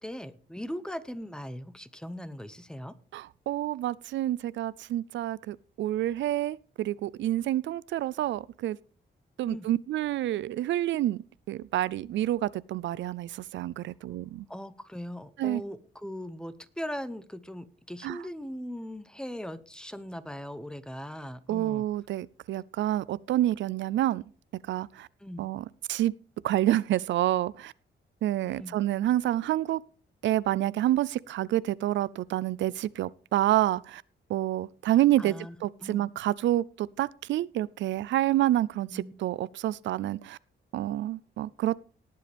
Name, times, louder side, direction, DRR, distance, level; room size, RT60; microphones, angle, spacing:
voice 1, 0.0-2.9 9.4-9.7 14.5-21.9 25.2-25.4 28.5-28.8 35.2-36.1 38.9-39.1, equal, 5° left, 0.8 m, -39 dB
voice 2, 3.1-8.8 9.4-11.2 11.5-14.4 15.4-15.6 18.0-18.2 21.5-24.2 24.7-25.1 25.4-26.1 26.4-27.7 28.2-29.8 30.2-34.0 34.3-35.3 35.6-40.4 40.7-41.7, right 14 dB, 80° right, 0.4 m, -28 dB
19.0 x 7.6 x 3.4 m
cardioid pair, 125°, 19 cm